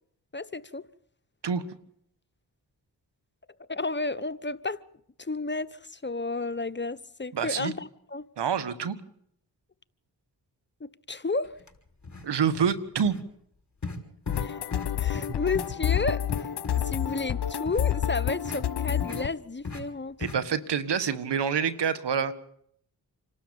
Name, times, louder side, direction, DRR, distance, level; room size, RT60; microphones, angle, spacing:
voice 1, 0.3-0.8 3.7-4.8 5.2-8.2 10.8-11.5 14.4-14.6 15.0-16.5 16.8-20.2, left 3 dB, 25° left, 1.0 m, -32 dB
voice 2, 7.3-7.7 8.4-9.0 12.2-13.2 20.2-22.3, right 7 dB, 75° right, 1.6 m, -27 dB
sound 1, 11.6-11.7 12.0-12.3 12.5-12.8 13.0-13.2 13.8-14.0 14.3-14.4 14.7-14.9 15.1-15.3 15.5-16.8 17.1-17.2 17.6-17.8 18.4-18.6 19.0-19.2 19.6-19.8 20.2-20.4, left 3 dB, 40° left, 5.8 m, -37 dB
sound 2, 14.3-19.3, left 11 dB, 70° left, 1.0 m, -29 dB
27.0 x 12.5 x 8.8 m
cardioid pair, 45°, 42 cm